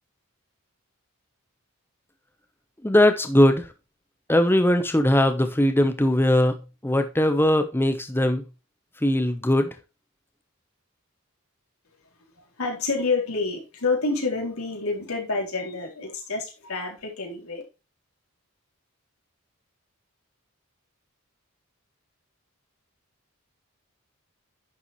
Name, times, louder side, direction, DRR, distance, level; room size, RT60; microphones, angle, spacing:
voice 1, 2.8-3.7 4.3-6.6 6.8-8.4 9.0-9.7, left 1 dB, 10° left, 8 dB, 0.9 m, -20 dB
voice 2, 12.6-17.6, left 3 dB, 80° left, 0 dB, 3.9 m, -28 dB
10.5 x 7.0 x 3.1 m, 0.29 s
head